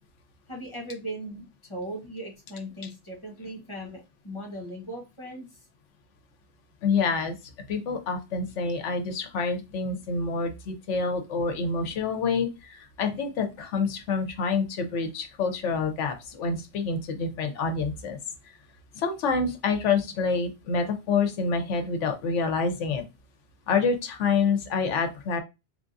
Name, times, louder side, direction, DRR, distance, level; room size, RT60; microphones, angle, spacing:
voice 1, 0.5-5.5, right 1 dB, 25° left, -2 dB, 1.1 m, -38 dB
voice 2, 6.8-7.4 7.7-18.2 18.4-18.6 18.9-23.0 23.7-25.4, left 5 dB, 75° left, 6 dB, 1.0 m, -27 dB
3.6 x 3.3 x 2.6 m, 0.26 s
omnidirectional pair, 1.3 m